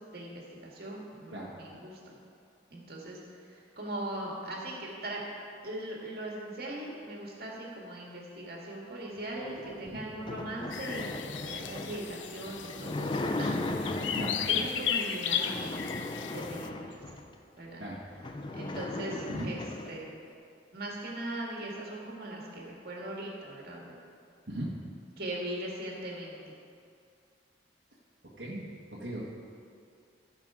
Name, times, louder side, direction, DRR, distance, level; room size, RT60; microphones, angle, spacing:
voice 1, 0.0-2.2 2.7-5.2 5.6-14.2 14.5-15.8 16.3-17.0 17.6-17.9 18.5-19.6 19.9-20.1 20.7-24.0 25.2-26.4, right 1 dB, 55° right, -3 dB, 2.0 m, -40 dB
voice 2, 1.3-1.8 14.2-14.6 17.8-18.0 19.3-19.5 24.5-24.7 28.4-28.7 29.0-29.2, right 1 dB, 80° right, -6 dB, 1.5 m, -37 dB
sound 1, 9.5-14.7 15.3-17.3 17.8-17.9 18.1-20.0, left 2 dB, 25° left, 0.5 m, -37 dB
sound 2, 10.7-16.7, left 8 dB, 85° left, 0.5 m, -35 dB
14.5 x 5.8 x 4.9 m, 2.4 s
head